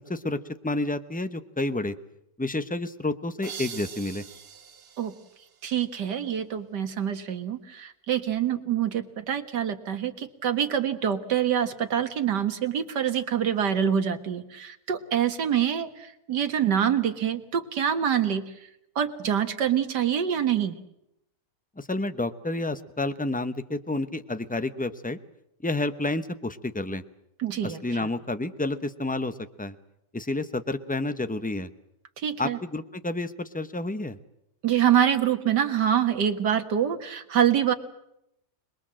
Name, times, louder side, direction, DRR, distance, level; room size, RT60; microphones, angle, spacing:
voice 1, 0.6-1.9 2.4-4.2 21.8-25.2 25.6-27.0 27.6-29.7 30.1-31.7 32.4-34.2, left 2 dB, 10° left, 11 dB, 0.6 m, -30 dB
sound 1, 3.4-6.1, right 6 dB, 40° right, 1.2 m, -43 dB
voice 2, 5.6-18.5 19.0-20.7 27.4-28.1 32.2-32.6 34.6-37.7, right 9 dB, 80° right, 8 dB, 2.2 m, -25 dB
26.0 x 21.0 x 7.6 m, 0.82 s
omnidirectional pair, 1.8 m